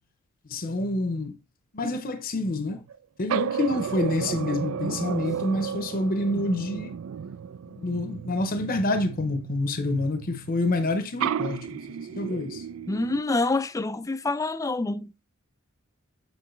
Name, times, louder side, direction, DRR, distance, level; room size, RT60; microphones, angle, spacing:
voice 1, 0.5-1.4 1.7-2.8 3.2-6.9 7.7-12.6, left 2 dB, 45° left, 0.7 m, -27 dB
sound 1, 2.8-3.0 3.3-10.9 11.2-13.2, right 8 dB, 75° right, 0.3 m, -33 dB
voice 2, 12.9-15.2, left 3 dB, 15° left, 0.3 m, -27 dB
7.9 x 4.7 x 3.1 m
head